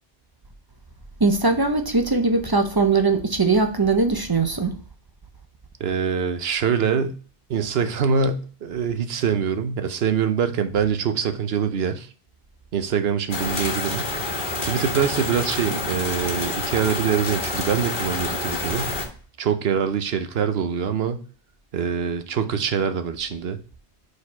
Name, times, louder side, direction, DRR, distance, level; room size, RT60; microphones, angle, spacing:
voice 1, 1.2-4.8, right 3 dB, 25° right, 0.5 m, -20 dB
voice 2, 5.8-7.2 7.5-12.1 12.7-18.9 19.4-21.2 21.7-23.6, right 7 dB, 65° right, 0.9 m, -24 dB
sound 1, 13.3-19.1, left 2 dB, 50° left, 1.4 m, -28 dB
5.0 x 4.2 x 5.5 m
omnidirectional pair, 1.1 m